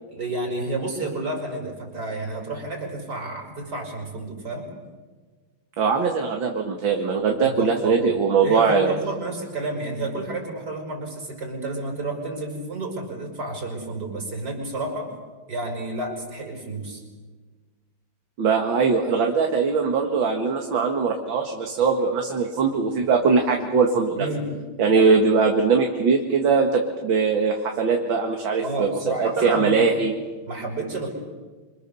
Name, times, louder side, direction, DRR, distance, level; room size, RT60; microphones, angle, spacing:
voice 1, 0.1-4.7 7.4-7.9 8.4-15.1 15.5-17.0 24.2-24.5 28.6-29.9 30.4-31.1, right 2 dB, 50° right, 2 dB, 6.1 m, -30 dB
voice 2, 5.8-8.9 18.4-24.3 24.8-28.9 29.1-30.1, right 5 dB, 65° right, 2 dB, 2.5 m, -21 dB
27.5 x 26.0 x 7.0 m, 1.4 s
omnidirectional pair, 2.3 m